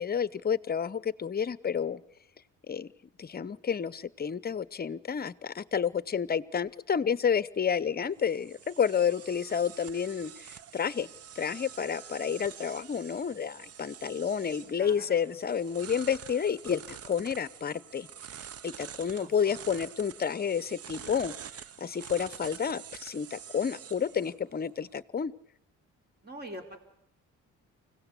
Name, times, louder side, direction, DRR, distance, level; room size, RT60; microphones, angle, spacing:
voice 1, 0.0-2.0 2.7-2.9 3.2-11.1 11.4-18.1 18.6-21.3 21.8-25.3, left 7 dB, 30° left, 18 dB, 0.8 m, -30 dB
sound 1, 7.8-25.0, right 9 dB, 50° right, 0.8 m, -47 dB
voice 2, 14.8-15.2 19.1-19.3 26.2-26.8, right 1 dB, 35° right, 4 dB, 4.1 m, -44 dB
24.5 x 17.0 x 8.2 m, 0.78 s
cardioid pair, 90°, 30 cm